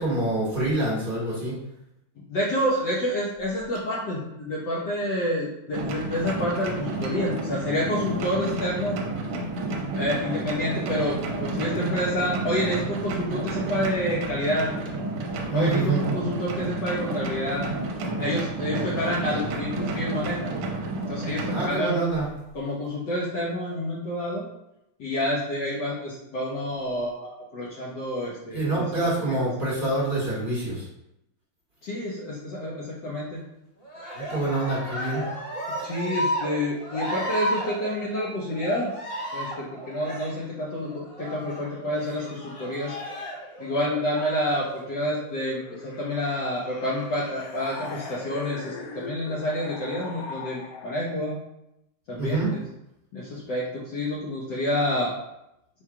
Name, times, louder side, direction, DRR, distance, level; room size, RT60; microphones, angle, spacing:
voice 1, 0.0-1.6 15.5-16.0 21.5-22.3 28.5-30.9 34.1-35.2 52.2-52.5, right 2 dB, 35° right, -7 dB, 1.0 m, -26 dB
voice 2, 2.3-9.0 9.9-14.7 15.5-17.7 18.2-20.5 21.1-22.0 22.5-24.4 25.0-28.9 29.3-29.4 31.8-33.4 35.8-38.9 39.3-42.9 43.6-51.4 52.1-52.6 53.1-55.1, left 1 dB, 65° left, -5 dB, 1.2 m, -28 dB
sound 1, 5.7-21.7, right 2 dB, 75° right, 1.4 m, -30 dB
Cheering, 33.8-45.5 46.8-47.6 48.4-49.0, equal, 45° left, 0.7 m, -34 dB
sound 2, 45.4-51.2, left 4 dB, 90° left, 0.8 m, -40 dB
4.5 x 2.3 x 4.7 m, 0.85 s
omnidirectional pair, 2.4 m